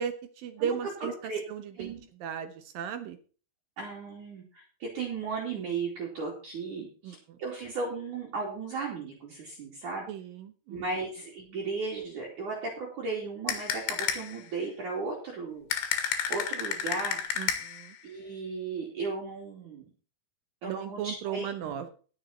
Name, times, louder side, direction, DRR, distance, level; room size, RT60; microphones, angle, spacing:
voice 1, 0.0-1.1 1.5-1.9 2.2-3.2 7.0-7.1 10.1-10.8 17.4-17.9 20.7-21.9, right 8 dB, 85° right, 9 dB, 2.0 m, -35 dB
voice 2, 0.6-1.4 1.7-2.0 3.8-10.1 10.7-15.7 16.3-17.2 18.0-19.9 20.6-21.7, right 4 dB, 45° right, -3 dB, 4.0 m, -36 dB
sound 1, 13.5-14.4 15.7-17.9, left 8 dB, 80° left, 4.3 m, -31 dB
19.5 x 7.0 x 4.3 m, 0.39 s
omnidirectional pair, 5.5 m